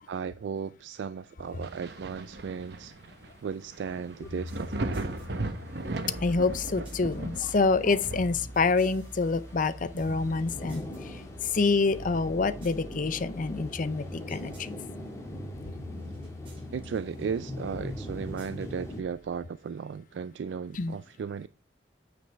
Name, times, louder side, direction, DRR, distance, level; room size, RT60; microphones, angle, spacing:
voice 1, 0.1-2.9 3.4-5.0 16.7-21.5, right 6 dB, 85° right, 0.3 m, -35 dB
sound 1, 1.5-19.0, left 1 dB, 15° left, 1.7 m, -44 dB
Thunder, 1.6-12.9 13.4-14.9 15.2-15.3 15.9-17.2 18.6-18.7, right 2 dB, 65° right, 1.0 m, -40 dB
sound 2, 4.2-19.5, left 1 dB, 30° right, 4.5 m, -44 dB
voice 2, 6.2-14.8 20.8-20.9, left 4 dB, 50° left, 0.6 m, -27 dB
9.2 x 5.2 x 3.4 m
head